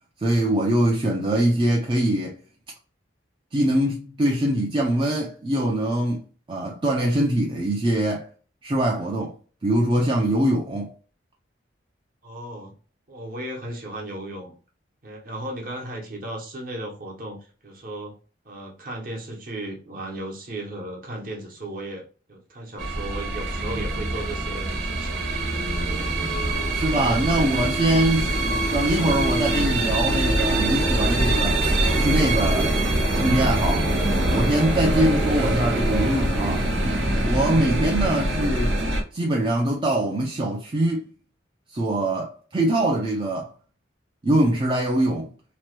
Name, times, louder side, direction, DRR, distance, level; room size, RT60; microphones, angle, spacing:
voice 1, 0.2-2.4 3.5-8.3 8.6-9.4 9.6-10.9 26.7-31.6 31.9-32.8 33.1-33.9 34.3-36.7 37.2-38.8 39.1-41.1 41.7-43.5 44.2-45.3, right 1 dB, 25° right, 0.4 m, -23 dB
voice 2, 12.2-12.7 13.1-14.5 15.0-17.4 17.6-18.1 18.4-25.3 25.7-26.1 26.4-27.7, right 1 dB, 50° right, 0.9 m, -36 dB
sound 1, 22.8-39.0, right 1 dB, 80° right, 1.0 m, -23 dB
2.9 x 2.1 x 2.9 m
head